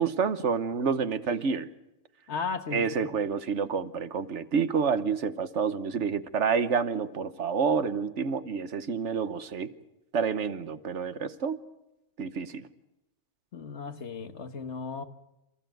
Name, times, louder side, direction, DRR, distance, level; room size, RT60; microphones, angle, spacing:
voice 1, 0.0-1.7 2.7-9.7 10.1-11.6 12.2-12.7, right 6 dB, 70° right, 12 dB, 1.4 m, -28 dB
voice 2, 2.3-3.1 13.5-15.0, left 5 dB, 65° left, 9 dB, 1.6 m, -35 dB
28.0 x 15.0 x 9.2 m, 0.90 s
omnidirectional pair, 1.3 m